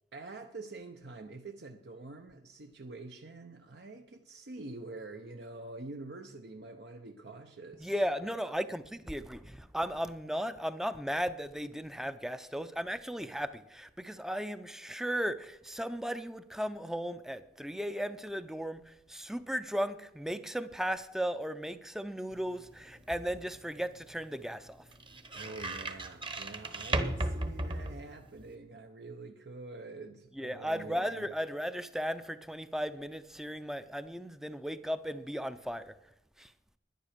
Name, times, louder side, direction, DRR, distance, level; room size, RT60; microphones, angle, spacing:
voice 1, 0.1-8.5 25.3-31.3, right 2 dB, 70° right, 0.8 m, -46 dB
voice 2, 7.8-24.8 30.4-35.9 36.4-36.5, equal, 5° right, 0.5 m, -36 dB
sound 1, 22.3-28.5, right 1 dB, 30° right, 1.0 m, -38 dB
10.5 x 10.0 x 6.6 m
head